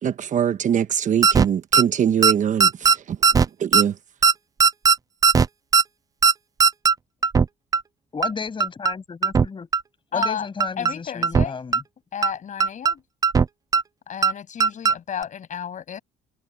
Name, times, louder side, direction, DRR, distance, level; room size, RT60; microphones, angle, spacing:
voice 1, 0.0-4.0, right 9 dB, 45° right, 1.1 m, -23 dB
sound 1, 1.2-1.5 1.7-1.8 2.2-2.3 2.6-3.0 3.2-3.5 3.7-3.8 4.2-4.3 4.6-5.0 5.2-5.5 5.7-5.8 6.2-6.3 6.6-6.9 7.2-7.5 7.7-7.8 8.2-8.3 8.6-8.9 9.2-9.5 9.7-9.8 10.2-10.3 10.6-10.9 11.2-11.5 11.7-11.8 12.2-12.3 12.6-12.9 13.2-13.5 13.7-13.8 14.2-14.3 14.6-14.9 15.2-15.3, right 5 dB, 20° right, 0.4 m, -17 dB
voice 2, 8.1-9.7 10.1-11.8, left 5 dB, 30° left, 6.8 m, -33 dB
voice 3, 10.1-10.5 10.8-11.6 12.1-13.0 14.1-16.0, left 8 dB, 45° left, 7.1 m, -32 dB
cardioid pair, 110°, 17 cm